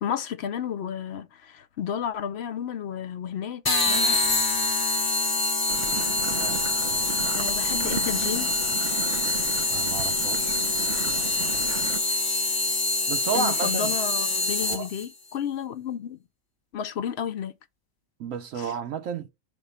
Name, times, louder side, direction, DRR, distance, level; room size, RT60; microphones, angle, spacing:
voice 1, 0.0-4.2 7.4-8.6 12.1-12.2 13.3-16.2 16.7-17.6 18.6-18.7, left 8 dB, 65° left, 0.8 m, -32 dB
sound 1, 3.6-15.1, left 2 dB, 25° left, 0.5 m, -25 dB
sound 2, 5.7-12.0, right 8 dB, 55° right, 0.5 m, -36 dB
voice 2, 6.3-7.1 9.7-10.7 11.0-11.9 13.1-14.0 14.6-14.9 18.2-19.3, right 6 dB, 80° right, 1.0 m, -33 dB
5.9 x 3.6 x 5.4 m
omnidirectional pair, 1.3 m